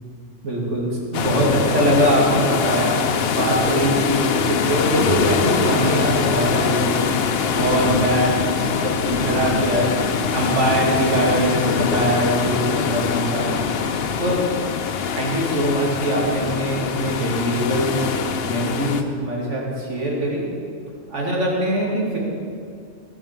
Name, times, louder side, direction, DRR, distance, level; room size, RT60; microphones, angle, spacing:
voice 1, 0.4-3.0 3.3-7.0 7.5-8.4 8.6-10.0 10.3-13.5 14.2-14.4 15.1-18.0 18.4-20.5 21.1-22.2, right 1 dB, 70° right, -3 dB, 2.7 m, -22 dB
sound 1, 1.1-19.0, left 6 dB, 60° left, 0.9 m, -23 dB
16.0 x 6.8 x 7.3 m, 2.4 s
omnidirectional pair, 1.3 m